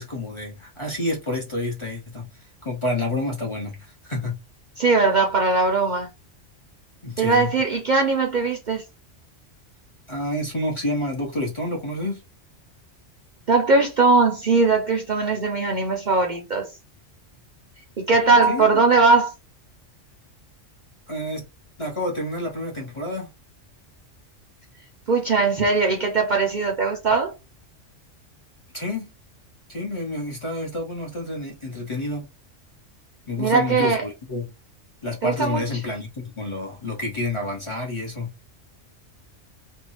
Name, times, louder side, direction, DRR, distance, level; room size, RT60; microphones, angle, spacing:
voice 1, 0.0-2.3 2.6-4.4 7.0-7.5 10.1-12.2 18.3-18.8 21.1-21.4 21.8-23.3 28.7-29.1 29.7-32.3 33.3-34.5 35.0-38.3, left 1 dB, 30° left, 0.6 m, -29 dB
voice 2, 4.8-6.1 7.2-8.8 13.5-16.7 18.0-19.3 25.1-27.3 33.4-34.0 35.2-35.7, right 3 dB, 55° right, 0.5 m, -20 dB
2.7 x 2.2 x 3.0 m
omnidirectional pair, 1.3 m